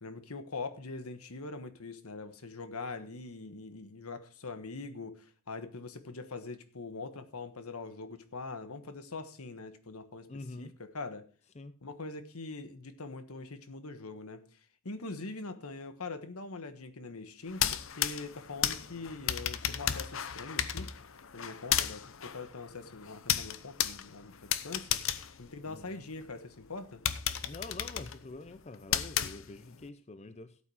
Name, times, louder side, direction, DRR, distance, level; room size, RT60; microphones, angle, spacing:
voice 1, 0.0-10.3 10.6-11.3 11.8-14.4 14.8-20.9 21.3-25.0 25.4-27.0, left 3 dB, 75° left, 1.3 m, -43 dB
voice 2, 10.3-10.7 11.6-11.8 25.7-26.0 27.5-30.6, left 2 dB, 30° left, 0.5 m, -46 dB
sound 1, 17.5-26.2 26.6-26.7 27.1-29.8, left 10 dB, 60° left, 0.8 m, -34 dB
13.0 x 8.6 x 4.8 m
head